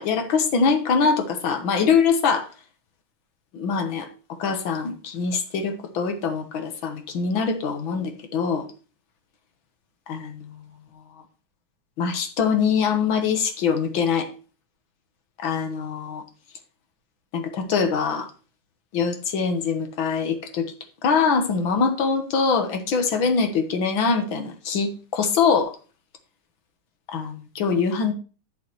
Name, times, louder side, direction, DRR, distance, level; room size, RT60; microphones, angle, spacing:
voice 1, 0.0-2.5 3.5-4.1 4.4-8.7 10.1-10.6 12.0-14.3 15.4-16.2 17.3-18.3 18.9-20.7 21.0-25.7 27.1-28.1, left 5 dB, 75° left, 6 dB, 2.0 m, -23 dB
11.0 x 6.6 x 3.1 m, 0.36 s
omnidirectional pair, 2.2 m